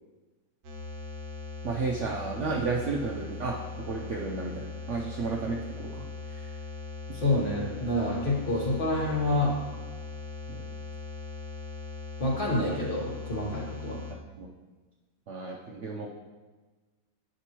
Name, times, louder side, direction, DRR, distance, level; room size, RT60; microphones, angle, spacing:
sound 1, 0.6-14.2, left 4 dB, 65° right, 1.1 m, -40 dB
voice 1, 1.6-3.5 3.9-6.0 6.3-6.5 10.5-10.6 14.4-14.5 15.3-16.1, right 4 dB, 90° right, -1 dB, 0.6 m, -32 dB
voice 2, 7.1-9.5 12.2-14.0, left 1 dB, 40° left, -4 dB, 0.9 m, -28 dB
8.1 x 5.2 x 2.9 m, 1.2 s
omnidirectional pair, 2.0 m